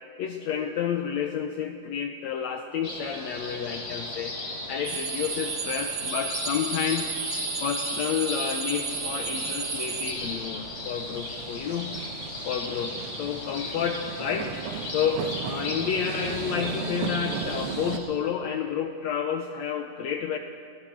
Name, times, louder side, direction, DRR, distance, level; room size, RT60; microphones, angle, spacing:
voice 1, 0.2-4.4 4.7-7.1 7.6-12.0 12.4-14.5 14.9-20.4, left 8 dB, 70° left, 5 dB, 1.8 m, -30 dB
sound 1, 2.8-18.0, left 1 dB, 30° left, 4.1 m, -36 dB
sound 2, 4.8-10.1, right 6 dB, 50° right, 1.6 m, -33 dB
sound 3, 8.9-18.0, right 7 dB, 70° right, 1.3 m, -37 dB
23.0 x 17.5 x 6.4 m, 2.5 s
omnidirectional pair, 3.8 m